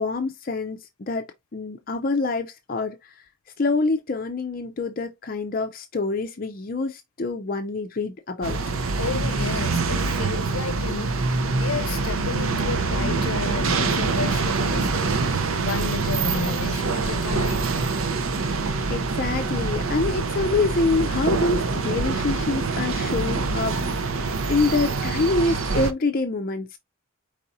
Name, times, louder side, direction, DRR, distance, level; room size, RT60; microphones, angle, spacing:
voice 1, 0.0-3.2 3.6-8.6 18.6-24.1 24.5-26.8, left 3 dB, 40° left, 0.5 m, -26 dB
sound 1, 8.4-25.9, right 4 dB, 75° right, 0.6 m, -25 dB
voice 2, 9.0-11.3 11.6-17.8, left 5 dB, 85° left, 0.6 m, -32 dB
4.8 x 4.1 x 2.6 m
head